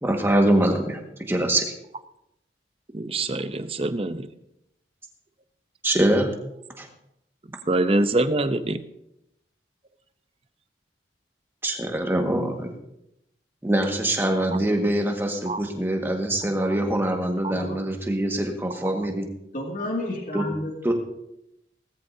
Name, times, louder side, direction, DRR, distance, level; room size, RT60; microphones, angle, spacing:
voice 1, 0.0-1.7 5.8-6.3 6.8-6.9 11.6-12.7 13.6-19.2 20.3-20.5 20.8-20.9, right 1 dB, 15° right, 2 dB, 1.7 m, -24 dB
voice 2, 2.9-4.3 7.7-8.8 15.5-15.6 16.6-16.7 17.4-17.5, right 2 dB, 30° right, 10 dB, 0.7 m, -24 dB
voice 3, 19.5-20.9, left 1 dB, 45° left, 0 dB, 2.4 m, -31 dB
18.5 x 13.5 x 2.8 m, 0.83 s
head